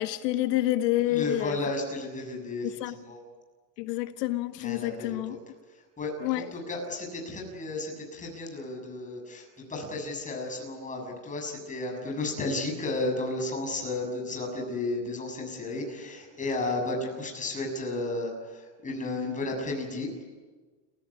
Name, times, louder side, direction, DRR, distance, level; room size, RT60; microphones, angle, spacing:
voice 1, 0.0-1.6 2.6-3.0 3.8-5.4 6.2-6.5, left 15 dB, 90° left, 11 dB, 1.2 m, -28 dB
voice 2, 1.1-3.2 4.6-5.4 5.7-20.1, left 2 dB, 15° left, 2 dB, 6.9 m, -33 dB
29.5 x 16.0 x 10.0 m, 1.4 s
supercardioid pair, 150°, 47 cm